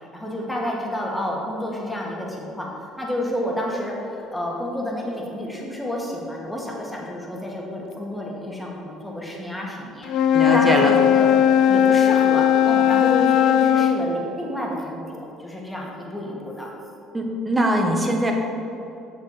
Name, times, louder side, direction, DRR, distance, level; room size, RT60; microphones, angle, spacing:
voice 1, 0.0-2.7 3.0-10.1 10.5-11.3 11.7-16.7, left 1 dB, 5° left, -3 dB, 2.0 m, -30 dB
Wind instrument woodwind instrument, 10.0-14.0, left 9 dB, 65° left, 0.5 m, -17 dB
voice 2, 10.3-10.9 17.1-18.3, right 1 dB, 20° right, 1 dB, 1.4 m, -22 dB
7.8 x 6.7 x 4.3 m, 2.8 s
supercardioid pair, 80°, 0 cm